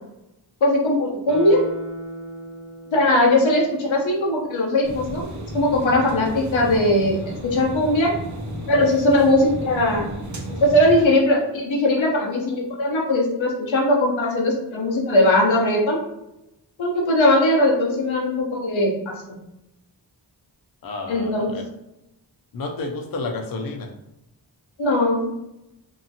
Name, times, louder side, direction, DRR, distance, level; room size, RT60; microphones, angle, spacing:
voice 1, 0.6-1.6 2.9-5.2 5.5-8.1 8.7-10.0 10.6-16.0 16.8-19.1 21.1-21.5 24.8-25.3, left 1 dB, 90° left, -2 dB, 0.8 m, -19 dB
Guitar, 1.3-4.5 4.9-5.0, right 2 dB, 80° right, 0.7 m, -37 dB
sound 1, 4.8-11.0, right 1 dB, 40° right, 0.6 m, -33 dB
voice 2, 20.8-21.7 22.5-23.9, left 3 dB, 50° left, 2 dB, 0.5 m, -30 dB
2.7 x 2.4 x 2.7 m, 0.89 s
wide cardioid pair, 50°, 45 cm